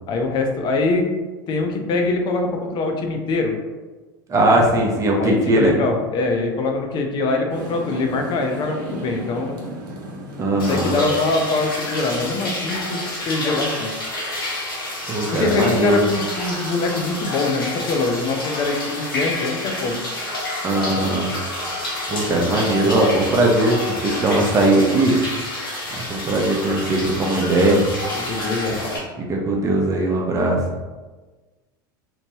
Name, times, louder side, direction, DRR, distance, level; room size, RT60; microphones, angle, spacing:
voice 1, 0.1-1.1 1.5-3.6 5.2-9.6 10.5-13.9 15.3-20.0 28.1-28.8, left 3 dB, 40° left, 3 dB, 0.6 m, -23 dB
voice 2, 4.3-5.7 10.4-10.9 15.1-16.0 20.6-21.3 22.1-23.8 24.0-25.2 26.0-27.9 29.2-30.6, right 1 dB, 30° right, 0 dB, 0.7 m, -19 dB
sound 1, 7.5-13.5, right 2 dB, 75° right, 0.7 m, -36 dB
sound 2, 10.6-29.0, left 1 dB, 90° left, 0.9 m, -29 dB
3.0 x 2.1 x 3.0 m, 1.3 s
hypercardioid pair, 85°, 11 cm